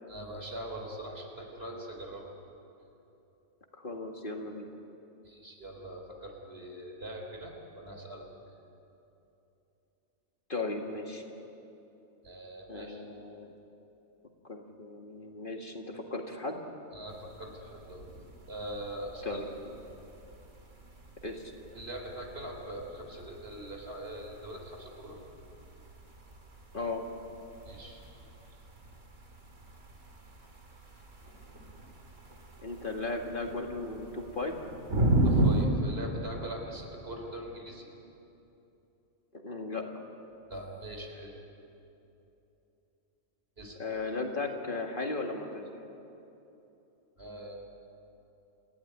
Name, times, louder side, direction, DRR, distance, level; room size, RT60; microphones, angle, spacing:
voice 1, 0.1-2.3 5.2-8.3 12.2-13.0 16.9-18.0 18.5-19.4 19.8-20.1 21.8-25.2 27.7-28.0 35.2-37.9 40.5-41.3 43.6-43.8 47.2-47.6, right 1 dB, 55° right, 1 dB, 3.9 m, -42 dB
voice 2, 3.7-4.7 10.5-11.2 12.7-13.5 14.4-16.6 19.2-19.8 21.2-21.5 26.7-27.0 32.6-34.6 39.3-40.0 43.8-45.7, left 2 dB, 45° left, 2 dB, 2.1 m, -36 dB
sound 1, 17.1-35.7, right 2 dB, 85° right, 2.8 m, -36 dB
28.0 x 16.0 x 9.9 m, 2.9 s
omnidirectional pair, 1.3 m